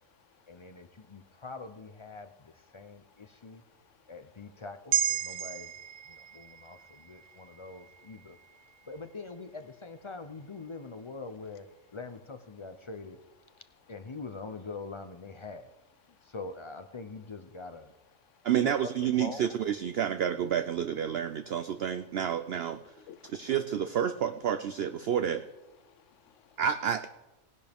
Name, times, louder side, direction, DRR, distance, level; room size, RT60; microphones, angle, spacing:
voice 1, 0.5-3.6 4.1-5.7 6.1-8.4 8.9-11.6 11.9-13.2 13.9-15.7 16.3-17.9 18.6-18.9 19.2-19.5, left 3 dB, 40° left, 9 dB, 0.4 m, -43 dB
voice 2, 3.2-4.0 5.3-5.4 6.6-6.8 23.0-23.5 25.8-26.6, left 9 dB, 65° left, 13 dB, 1.1 m, -57 dB
sound 1, 4.9-9.4 9.8-9.9, right 10 dB, 85° right, 1.1 m, -35 dB
voice 3, 18.4-22.8 23.3-25.4 26.6-27.1, right 9 dB, 60° right, 9 dB, 0.7 m, -29 dB
18.5 x 11.0 x 3.5 m, 1.0 s
omnidirectional pair, 1.4 m